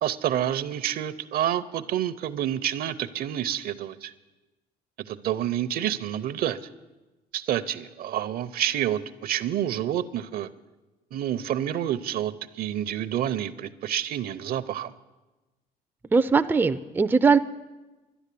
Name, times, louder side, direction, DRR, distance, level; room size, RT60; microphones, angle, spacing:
voice 1, 0.0-4.1 5.1-6.6 7.3-10.5 11.1-14.9, right 11 dB, 60° right, 14 dB, 0.7 m, -28 dB
voice 2, 16.1-17.4, right 5 dB, 10° right, 10 dB, 0.4 m, -20 dB
12.0 x 10.0 x 8.4 m, 1.1 s
cardioid pair, 110°, 17 cm